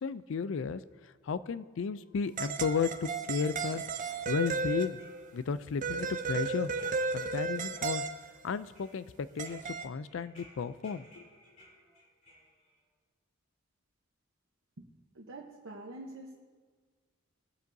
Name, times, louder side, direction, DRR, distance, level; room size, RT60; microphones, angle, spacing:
voice 1, 0.0-3.8 4.3-5.0 5.3-6.7 7.1-8.1 8.4-11.3, left 5 dB, 65° left, 15 dB, 0.4 m, -34 dB
sound 1, 2.4-5.2 5.8-8.3 9.4-9.8, right 4 dB, 40° right, 0.5 m, -34 dB
sound 2, 3.5-5.5 5.8-7.5 7.8-8.3 8.7-12.8, equal, 35° left, 3.1 m, -59 dB
voice 2, 15.1-16.3, right 2 dB, 70° right, -1 dB, 1.0 m, -45 dB
21.0 x 7.4 x 2.7 m, 1.5 s
head